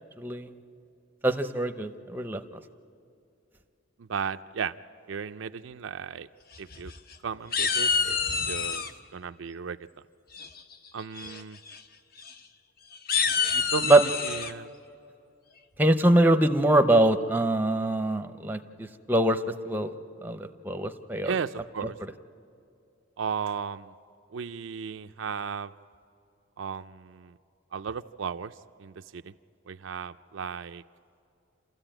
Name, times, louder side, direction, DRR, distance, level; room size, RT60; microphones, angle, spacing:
voice 1, 0.2-0.5 1.2-2.4 13.9-14.0 15.8-19.9 20.2-21.3, right 1 dB, 10° right, 8 dB, 0.7 m, -23 dB
voice 2, 4.0-4.8 5.1-6.3 6.6-6.9 7.2-8.8 9.1-9.8 10.9-11.6 13.5-14.7 21.2-22.0 23.2-23.9 24.3-25.7 26.6-27.4 27.7-29.3 29.7-30.8, right 6 dB, 70° right, 10 dB, 0.4 m, -35 dB
sound 1, 6.5-7.2 7.5-8.9 10.3-10.7 11.2-11.4 11.7-11.8 12.2-12.3 12.9-14.5, left 6 dB, 45° left, 0.9 m, -27 dB
28.0 x 14.0 x 8.9 m, 2.6 s
head